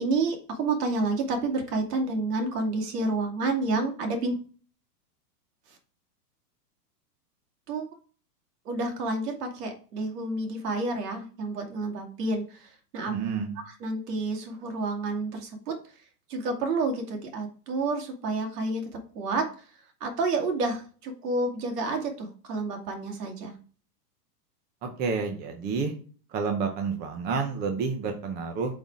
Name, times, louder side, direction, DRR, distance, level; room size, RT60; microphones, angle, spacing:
voice 1, 0.0-4.3 7.7-7.8 8.6-13.1 13.6-15.7 16.3-18.9 19.1-19.5 20.0-23.5, right 3 dB, 70° right, 3 dB, 2.6 m, -29 dB
voice 2, 13.1-13.5 24.8-25.9 26.3-28.8, right 5 dB, 20° right, 3 dB, 0.8 m, -29 dB
8.1 x 4.2 x 4.8 m, 0.40 s
supercardioid pair, 150°, 49 cm